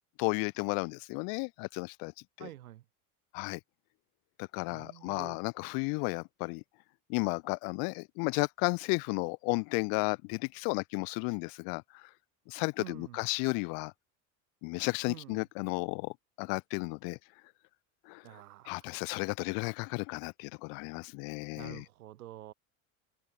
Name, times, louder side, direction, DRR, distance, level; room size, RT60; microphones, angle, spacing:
voice 1, 0.2-2.1 2.4-2.5 3.3-3.6 4.4-6.6 7.1-12.0 12.5-13.9 14.6-17.2 18.1-18.2 18.7-21.8, left 37 dB, 55° left, 0.7 m, -33 dB
voice 2, 2.4-2.8 4.7-5.4 12.8-13.2 15.1-15.4 18.2-18.9 21.5-22.5, right 14 dB, 85° right, 1.6 m, -48 dB
hypercardioid pair, 85°, 43 cm